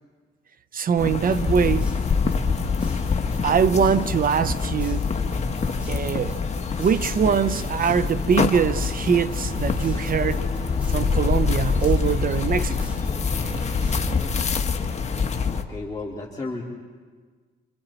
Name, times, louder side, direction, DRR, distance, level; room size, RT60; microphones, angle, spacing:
voice 1, 0.7-1.9 3.4-5.0 5.9-6.4 6.8-10.4 10.9-12.9, right 7 dB, 45° right, 0.6 m, -22 dB
sound 1, 1.0-15.6, left 5 dB, 35° left, 1.5 m, -25 dB
sound 2, 1.2-14.2, right 1 dB, 5° right, 4.6 m, -38 dB
voice 2, 15.3-16.6, left 3 dB, 20° left, 3.2 m, -34 dB
27.5 x 26.0 x 4.4 m
cardioid pair, 90°, 20 cm